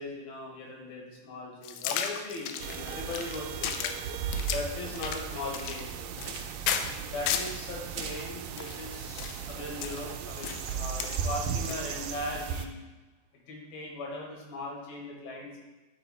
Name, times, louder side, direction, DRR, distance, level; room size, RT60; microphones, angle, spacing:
voice 1, 0.0-4.0 4.4-6.1 7.0-12.7 13.5-15.6, left 2 dB, 75° left, -2 dB, 3.4 m, -39 dB
sound 1, 1.6-7.6 8.0-12.0, left 8 dB, 90° left, 2.5 m, -35 dB
sound 2, 2.6-12.7, right 7 dB, 80° right, 2.1 m, -36 dB
11.5 x 4.0 x 4.2 m, 1.1 s
omnidirectional pair, 4.4 m